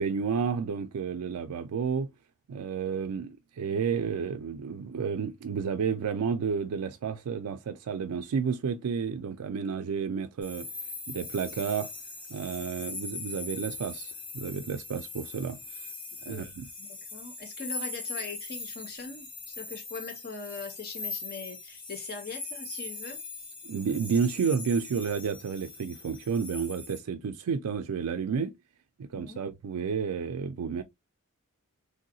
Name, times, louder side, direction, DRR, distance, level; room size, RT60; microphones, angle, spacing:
voice 1, 0.0-2.1 2.5-10.7 11.1-11.9 12.3-15.9 16.2-16.7 23.6-28.5 29.0-30.8, right 6 dB, 90° right, 0.4 m, -31 dB
sound 1, 10.4-27.0, left 3 dB, 20° left, 1.1 m, -41 dB
voice 2, 16.8-23.2 29.1-29.4, left 4 dB, 45° left, 0.7 m, -41 dB
3.4 x 2.7 x 2.6 m
head